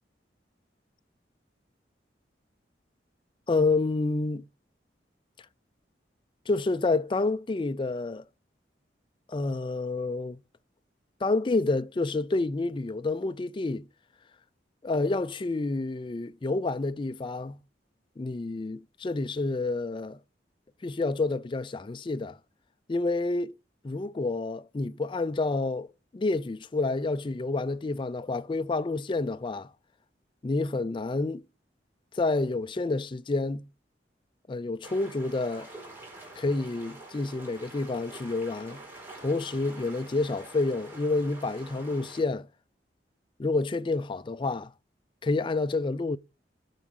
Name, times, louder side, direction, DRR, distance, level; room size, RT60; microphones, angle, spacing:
voice 1, 3.5-4.4 6.5-8.2 9.3-10.4 11.2-13.9 14.8-17.6 18.2-20.2 20.8-22.4 22.9-23.5 23.8-25.9 26.1-29.7 30.4-31.4 32.1-33.7 34.5-35.7 36.4-38.8 39.2-42.5 43.4-44.7 45.2-46.2, left 3 dB, 30° left, 0.4 m, -29 dB
sound 1, 34.8-42.2, right 2 dB, 15° right, 3.8 m, -46 dB
9.0 x 4.8 x 6.2 m
head